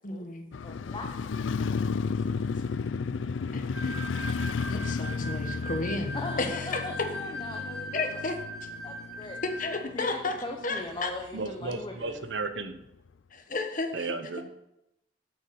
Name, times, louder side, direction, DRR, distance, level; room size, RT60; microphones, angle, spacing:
voice 1, 0.0-0.5 3.5-4.0 4.3-7.1 7.9-8.7 9.4-10.3 10.6-11.1 13.3-14.1, left 3 dB, 45° left, 5 dB, 1.3 m, -33 dB
Motorcycle, 0.5-10.6 11.0-11.1, left 5 dB, 90° left, 0.4 m, -33 dB
voice 2, 0.6-1.1 6.1-8.0 8.8-9.4 9.9-12.2, left 2 dB, 25° left, 3 dB, 0.8 m, -39 dB
sound 1, 3.7-9.8, equal, 5° right, 3.6 m, -40 dB
voice 3, 11.3-12.9 13.9-14.5, right 3 dB, 70° right, 10 dB, 1.0 m, -34 dB
8.2 x 6.5 x 6.9 m, 0.85 s
head